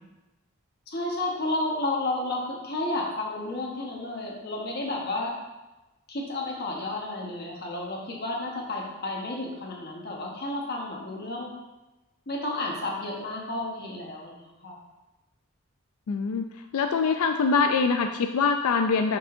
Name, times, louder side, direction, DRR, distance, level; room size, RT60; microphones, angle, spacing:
voice 1, 0.9-5.3 6.1-11.5 12.3-14.3 14.6-14.8, left 2 dB, 45° left, -1 dB, 1.2 m, -31 dB
voice 2, 16.1-16.5 16.7-19.2, left 5 dB, 90° left, 6 dB, 0.4 m, -24 dB
6.9 x 6.0 x 2.6 m, 1.1 s
head